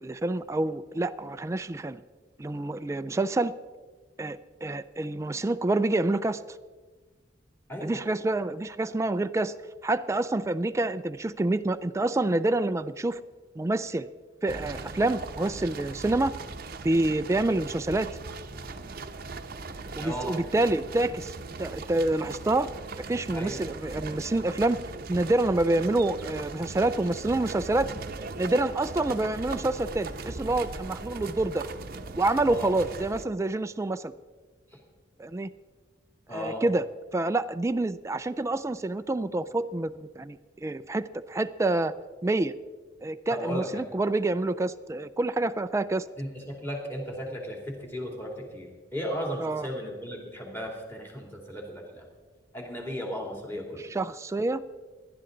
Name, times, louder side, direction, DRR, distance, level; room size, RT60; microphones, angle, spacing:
voice 1, 0.0-2.0 2.4-3.5 4.2-6.4 7.8-9.5 9.8-13.2 13.6-14.1 14.4-16.3 16.8-18.1 20.0-22.7 23.1-24.8 25.1-27.9 28.4-31.7 32.2-34.1 35.2-35.5 36.3-36.8 37.1-41.9 42.2-42.5 43.0-46.1 49.4-49.7 53.8-54.6, right 2 dB, 15° right, 11 dB, 0.3 m, -27 dB
voice 2, 7.7-8.0 20.0-20.4 23.3-23.6 32.5-32.7 36.3-36.6 43.3-43.8 46.2-52.1 52.5-53.9, equal, 10° left, 0 dB, 2.7 m, -35 dB
sound 1, 14.5-33.3, right 3 dB, 50° right, 0.8 m, -39 dB
17.5 x 11.0 x 3.9 m, 1.3 s
head